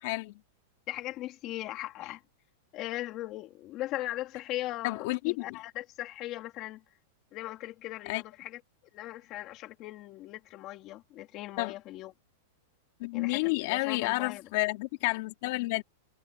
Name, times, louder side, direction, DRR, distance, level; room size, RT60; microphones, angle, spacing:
voice 1, 0.0-0.4 4.8-5.5 8.1-8.2 11.6-11.7 13.0-15.8, left 22 dB, 40° left, 4.0 m, -30 dB
voice 2, 0.9-2.2 2.7-6.8 7.3-8.6 8.9-12.1 13.1-14.4, left 15 dB, 25° left, 3.6 m, -39 dB
supercardioid pair, 175°, 0 cm